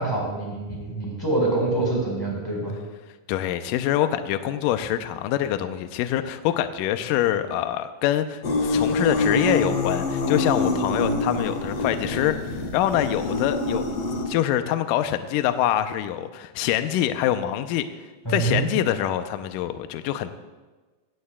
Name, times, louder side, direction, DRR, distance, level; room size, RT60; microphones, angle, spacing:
voice 1, 0.0-2.8 18.2-18.7, right 2 dB, 5° left, -3 dB, 3.7 m, -25 dB
voice 2, 3.3-14.0 14.3-17.8 18.3-20.3, left 12 dB, 85° left, 9 dB, 1.9 m, -25 dB
sound 1, 8.4-14.3, left 2 dB, 55° left, 2.2 m, -25 dB
16.5 x 16.0 x 2.3 m, 1.3 s
omnidirectional pair, 4.5 m